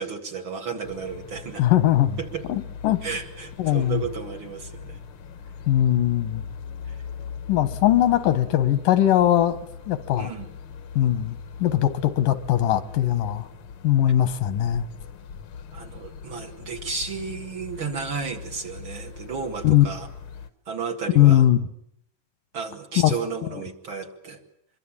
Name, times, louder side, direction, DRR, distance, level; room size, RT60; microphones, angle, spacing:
voice 1, 0.0-1.7 2.2-2.4 3.0-5.0 6.9-7.0 10.2-10.5 15.7-20.1 20.7-21.4 22.5-24.4, right 5 dB, 45° right, 4 dB, 2.4 m, -33 dB
sound 1, 0.8-20.5, left 6 dB, 60° left, 1.5 m, -40 dB
voice 2, 1.6-2.2 2.5-3.0 3.6-4.0 5.7-6.4 7.5-9.6 9.9-10.3 11.0-13.5 13.8-14.9 19.6-19.9 21.1-21.7 23.0-23.1, left 12 dB, 85° left, 13 dB, 2.9 m, -20 dB
24.5 x 23.0 x 8.8 m, 0.70 s
omnidirectional pair, 3.8 m